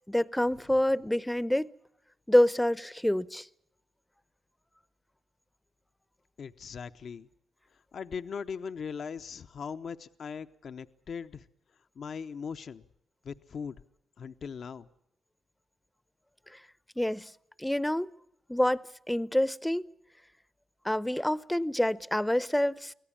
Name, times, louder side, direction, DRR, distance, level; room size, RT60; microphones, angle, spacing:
voice 1, 0.1-1.7 2.3-3.5 17.0-17.3 17.6-18.1 18.5-19.9 20.8-22.9, left 1 dB, 5° left, 0.8 m, -27 dB
voice 2, 6.4-7.3 7.7-11.5 12.0-12.9 13.2-13.8 14.2-14.9, left 6 dB, 60° left, 0.8 m, -39 dB
25.0 x 17.0 x 8.6 m
supercardioid pair, 60°, 0 cm